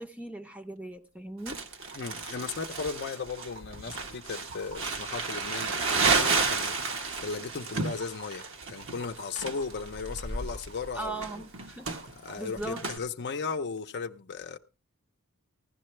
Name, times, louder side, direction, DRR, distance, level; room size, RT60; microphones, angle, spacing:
voice 1, 0.0-1.7 10.9-11.9 12.4-12.9, right 2 dB, 5° right, 0.7 m, -39 dB
sound 1, 0.8-0.9 1.1-1.2 1.8-12.1 13.8-13.9, right 3 dB, 90° right, 2.8 m, -52 dB
Crumpling crinkling, 1.5-13.0, right 4 dB, 65° right, 1.3 m, -32 dB
voice 2, 2.0-6.9 7.2-8.4 8.7-11.2 12.1-14.6, left 5 dB, 55° left, 0.7 m, -36 dB
16.0 x 11.5 x 3.2 m
head